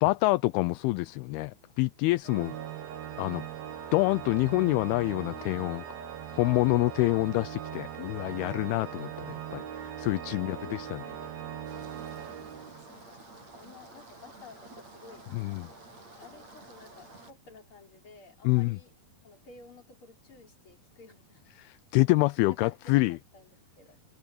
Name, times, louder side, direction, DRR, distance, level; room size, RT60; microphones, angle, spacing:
voice 1, 0.0-2.6 3.2-3.4 3.9-5.8 6.3-11.0 15.3-15.7 18.4-18.8 21.6-23.2, left 21 dB, 80° left, 2.5 m, -27 dB
Organ, 2.2-13.1, right 9 dB, 70° right, 3.5 m, -40 dB
voice 2, 10.3-11.1 12.1-15.4 16.2-19.0 19.2-21.5 22.6-23.5 23.8-24.0, left 4 dB, 30° left, 5.0 m, -53 dB
sound 1, 11.6-17.3, right 2 dB, 45° right, 8.9 m, -50 dB
omnidirectional pair, 4.5 m